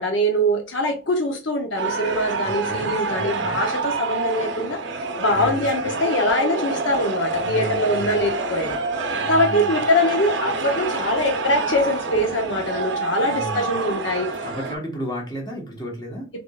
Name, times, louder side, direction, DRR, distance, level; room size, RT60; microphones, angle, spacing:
voice 1, 0.0-14.3, left 1 dB, 70° left, 3 dB, 0.7 m, -23 dB
sound 1, 1.8-14.7, right 3 dB, 70° right, 0.6 m, -27 dB
voice 2, 2.3-3.6 5.3-6.0 7.4-8.2 9.1-9.7 13.1-13.7 14.4-16.3, right 1 dB, 25° left, -1 dB, 1.2 m, -34 dB
3.7 x 3.6 x 2.3 m, 0.31 s
head